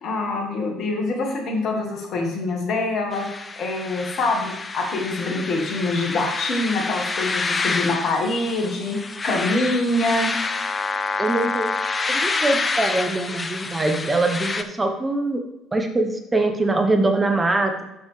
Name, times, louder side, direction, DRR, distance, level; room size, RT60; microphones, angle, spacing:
voice 1, 0.0-3.3 3.6-9.0 9.2-10.3, left 2 dB, 55° left, 2 dB, 1.7 m, -25 dB
sound 1, 3.1-14.6, left 3 dB, 30° left, 0.6 m, -28 dB
voice 2, 11.2-11.8 12.1-15.4 15.7-17.8, right 2 dB, 20° right, 4 dB, 1.2 m, -23 dB
8.3 x 6.3 x 3.3 m, 0.92 s
hypercardioid pair, 55°, 0 cm